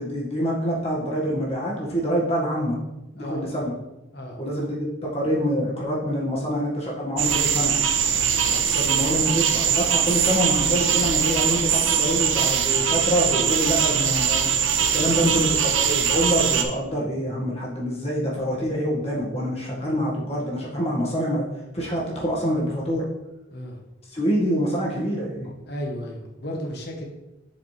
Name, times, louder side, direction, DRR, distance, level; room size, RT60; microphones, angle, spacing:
voice 1, 0.0-2.8 3.1-3.7 4.4-7.7 8.5-14.5 14.9-21.4 21.7-23.1 24.1-25.5, equal, 30° left, -5 dB, 1.8 m, -26 dB
sound 1, 7.2-16.6, right 8 dB, 80° right, 0.7 m, -22 dB
voice 2, 15.0-15.5 19.7-19.9 23.5-23.8 25.7-27.1, equal, 55° left, 0 dB, 1.3 m, -35 dB
7.6 x 4.9 x 3.4 m, 0.99 s
head